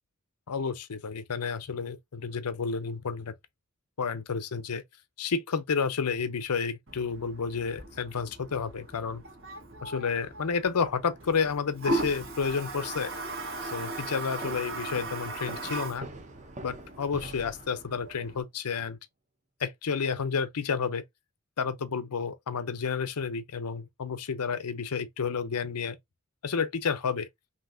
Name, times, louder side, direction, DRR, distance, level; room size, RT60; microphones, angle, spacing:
voice 1, 0.5-3.3 4.0-4.8 5.2-9.2 9.8-13.1 13.6-16.1 16.6-19.0 19.6-21.0 21.6-26.0 26.4-27.3, left 5 dB, 85° left, 0.6 m, -31 dB
Toilet flush, 6.9-18.4, right 2 dB, 60° right, 1.6 m, -38 dB
sound 1, 14.4-18.1, right 2 dB, 30° right, 1.0 m, -45 dB
5.7 x 2.8 x 2.6 m
head